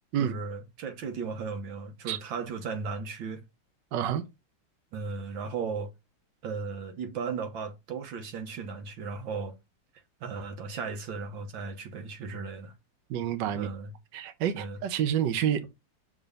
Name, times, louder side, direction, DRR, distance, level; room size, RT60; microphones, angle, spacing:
voice 1, 0.2-3.4 4.9-5.9 6.4-9.6 10.2-12.7 13.5-13.9 14.5-14.8, right 5 dB, 90° right, 1.9 m, -36 dB
voice 2, 3.9-4.2 13.1-13.7 14.1-15.7, right 9 dB, 70° right, 1.4 m, -28 dB
6.2 x 3.9 x 5.2 m
omnidirectional pair, 2.0 m